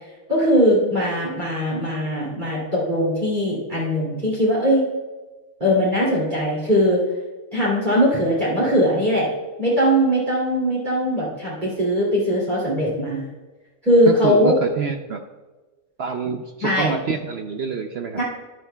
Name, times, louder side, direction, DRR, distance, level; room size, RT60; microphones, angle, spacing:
voice 1, 0.3-4.9 5.6-7.0 7.5-9.3 9.6-13.3 13.8-14.5 16.6-17.0 18.2-18.3, equal, 30° right, -7 dB, 2.8 m, -20 dB
voice 2, 14.1-15.2 16.0-18.2, right 6 dB, 60° right, 5 dB, 0.7 m, -26 dB
12.5 x 11.0 x 2.3 m, 1.2 s
omnidirectional pair, 1.5 m